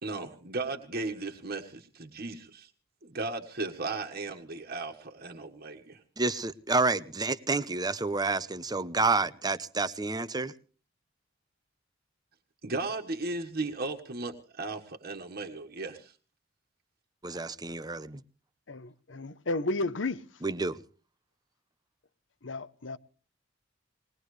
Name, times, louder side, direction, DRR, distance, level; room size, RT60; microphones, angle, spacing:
voice 1, 0.0-2.7 3.0-6.0 12.6-16.1, right 3 dB, 55° right, 1.6 m, -36 dB
voice 2, 6.2-10.5 17.2-18.2 20.4-20.8, right 3 dB, 20° right, 0.8 m, -29 dB
voice 3, 18.7-20.2 22.4-23.0, left 2 dB, 70° left, 0.9 m, -33 dB
21.0 x 19.5 x 3.3 m
head